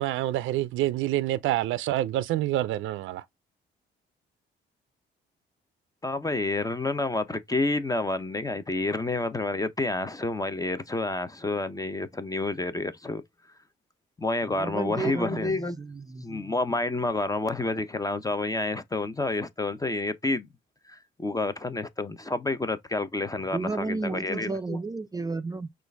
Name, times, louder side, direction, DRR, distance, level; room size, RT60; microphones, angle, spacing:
voice 1, 0.0-3.2, right 14 dB, 80° right, 0.4 m, -27 dB
voice 2, 6.0-13.2 14.2-15.8 16.2-20.5 20.9-24.8, left 2 dB, 15° left, 0.7 m, -29 dB
voice 3, 14.4-16.3 23.5-25.7, right 3 dB, 20° right, 0.4 m, -32 dB
6.2 x 2.5 x 3.4 m
cardioid pair, 90°, 20 cm